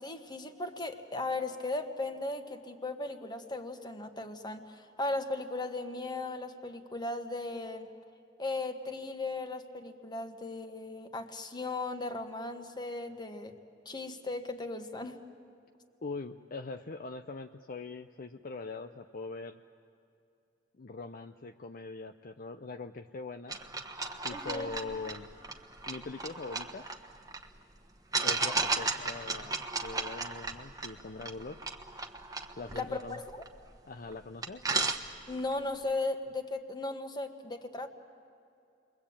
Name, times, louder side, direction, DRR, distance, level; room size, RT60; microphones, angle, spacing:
voice 1, 0.0-7.9 8.4-13.5 13.8-15.2 24.3-24.7 32.7-33.4 35.3-37.9, left 2 dB, 25° left, 7 dB, 1.5 m, -37 dB
voice 2, 16.0-19.6 20.8-23.6 24.2-25.3 25.9-26.9 28.2-31.7 32.5-33.2 33.9-34.7, left 3 dB, 50° left, 7 dB, 0.6 m, -42 dB
sound 1, 23.5-27.5 28.1-33.8 34.1-34.2 34.4-35.5, right 3 dB, 20° right, 1.3 m, -35 dB
29.5 x 22.5 x 8.8 m, 2.7 s
head